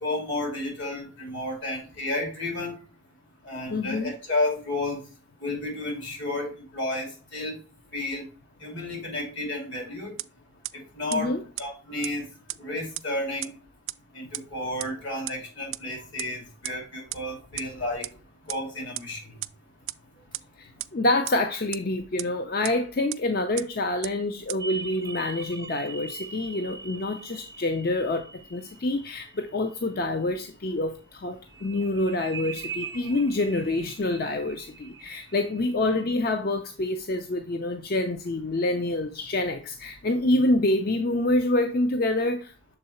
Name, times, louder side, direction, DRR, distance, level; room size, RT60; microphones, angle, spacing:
voice 1, 0.0-2.7 3.4-5.0 5.4-7.6 7.9-8.2 8.6-10.2 10.7-11.3 11.6-12.3 12.6-13.5 14.1-18.0 18.5-19.2, left 2 dB, 70° left, 2.7 m, -31 dB
voice 2, 3.7-4.1 11.1-11.4 20.6-42.5, left 2 dB, 50° left, 0.5 m, -27 dB
sound 1, 10.2-10.3 10.6-10.7 11.1-11.2 11.6-11.7 12.0-12.1 12.5-12.6 13.0-13.1 13.4-13.5 13.9-14.0 14.3-14.4 14.8-14.9 15.3-15.4 15.7-15.8 16.2-16.3 16.6-16.7 17.1-17.2 17.6-17.7 18.0-18.1 18.5-18.6 19.0-19.1 19.4-19.5 19.9-20.0 20.3-20.4 20.8-20.9 21.3-21.4 21.7-21.8 22.2-22.3 22.6-22.7 23.1-23.2 23.6-23.7 24.0-24.1 24.5-24.6, right 19 dB, 90° right, 0.3 m, -32 dB
sound 2, 24.6-30.1 31.5-36.2, right 4 dB, 15° right, 0.4 m, -42 dB
6.7 x 3.8 x 4.2 m
head